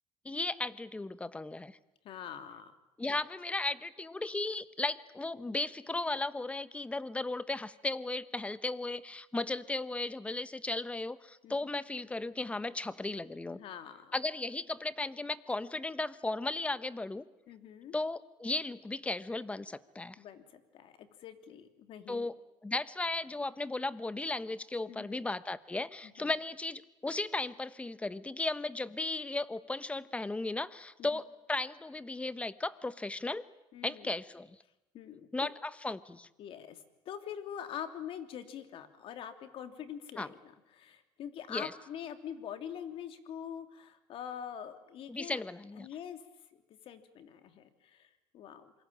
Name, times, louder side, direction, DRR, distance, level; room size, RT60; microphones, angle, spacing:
voice 1, 0.2-1.8 3.0-13.6 14.1-17.2 17.9-20.2 22.1-22.3 22.6-33.4 33.8-34.6 35.3-36.3 40.2-40.3 41.5-41.7 45.1-45.9, left 2 dB, 10° left, 15 dB, 1.2 m, -36 dB
voice 2, 2.0-2.7 3.0-3.2 11.4-11.5 13.5-14.2 17.5-17.9 20.2-22.3 24.9-25.2 26.0-26.3 31.0-31.2 33.7-34.1 34.9-35.5 36.4-45.4 45.8-46.2 46.5-48.7, left 9 dB, 55° left, 9 dB, 3.1 m, -44 dB
27.0 x 24.0 x 8.9 m, 0.94 s
cardioid pair, 110°, 11 cm